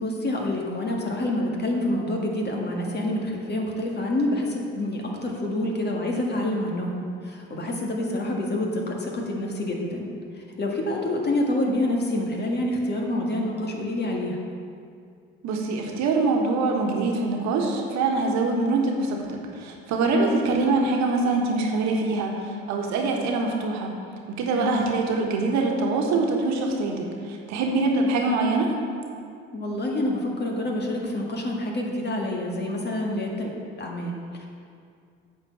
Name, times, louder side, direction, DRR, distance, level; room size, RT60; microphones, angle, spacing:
voice 1, 0.0-10.1 10.6-14.4 20.1-20.4 24.6-24.8 29.5-33.5 33.8-34.5, left 1 dB, 35° left, -1 dB, 1.9 m, -27 dB
voice 2, 15.4-23.9 24.3-28.7, right 3 dB, 65° right, 1 dB, 1.4 m, -24 dB
8.5 x 4.5 x 7.2 m, 2.3 s
hypercardioid pair, 60°, 29 cm